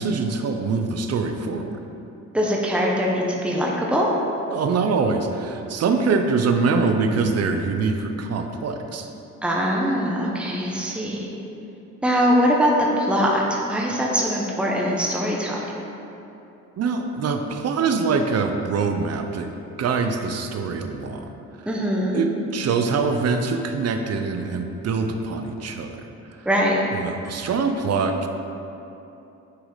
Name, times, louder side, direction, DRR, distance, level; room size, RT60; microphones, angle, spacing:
voice 1, 0.0-1.8 4.5-9.1 16.8-21.3 22.1-25.9 26.4-26.5 26.9-28.3, right 4 dB, 55° right, 5 dB, 0.7 m, -24 dB
voice 2, 2.3-4.1 9.4-11.3 12.0-13.4 13.7-15.6 21.7-22.2 26.4-26.8, equal, 5° right, -3 dB, 1.1 m, -22 dB
9.7 x 4.8 x 4.0 m, 2.9 s
cardioid pair, 90°, 30 cm